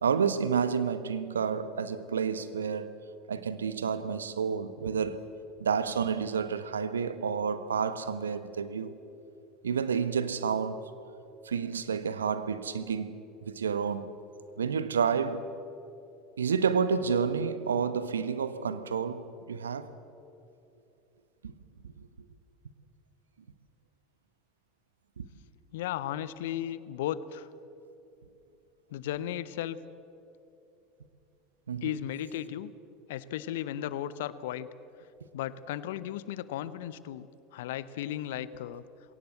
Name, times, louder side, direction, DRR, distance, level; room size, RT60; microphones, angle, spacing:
voice 1, 0.0-2.9 3.3-5.2 5.6-9.0 9.6-10.8 11.4-14.1 14.6-15.5 16.4-19.9 21.4-21.5 21.8-22.1 25.2-25.3 31.7-32.0, right 6 dB, 80° right, 0.9 m, -30 dB
voice 2, 25.7-27.5 28.9-29.8 31.8-32.7 33.1-34.7 35.3-37.3 37.5-38.8, left 12 dB, 65° left, 0.7 m, -35 dB
21.0 x 17.5 x 7.8 m
figure-of-eight pair, 75°, 0 cm